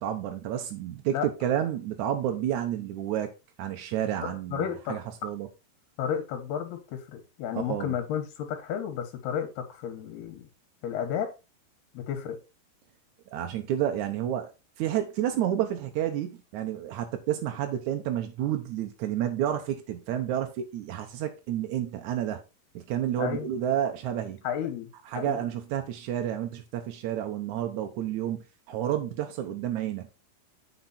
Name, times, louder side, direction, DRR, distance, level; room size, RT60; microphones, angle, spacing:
voice 1, 0.0-3.3 3.6-5.5 7.7-7.9 13.3-14.5 14.8-22.4 22.8-24.4 25.1-30.1, right 11 dB, 75° right, 1.8 m, -30 dB
voice 2, 4.2-5.0 6.0-10.5 10.8-11.3 11.9-12.4 23.2-23.5 24.4-24.9 25.2-25.4, left 8 dB, 80° left, 3.5 m, -32 dB
8.5 x 5.3 x 4.1 m
omnidirectional pair, 4.5 m